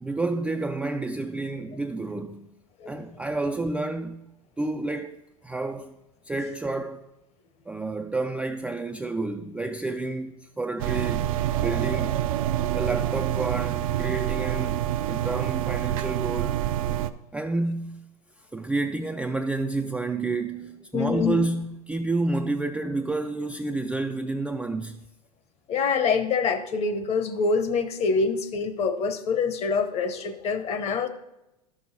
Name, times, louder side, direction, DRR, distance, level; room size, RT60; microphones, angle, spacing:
voice 1, 0.0-2.5 2.9-4.3 4.6-5.2 5.4-6.0 6.2-7.0 7.7-12.2 12.7-14.8 15.1-16.6 17.3-18.1 18.5-25.0, right 2 dB, 5° right, 0.3 m, -30 dB
sound 1, 10.8-17.1, right 12 dB, 65° right, 0.5 m, -27 dB
voice 2, 20.9-21.5 25.7-31.1, left 5 dB, 35° left, 0.9 m, -25 dB
11.5 x 6.2 x 4.0 m
hypercardioid pair, 105°, 19 cm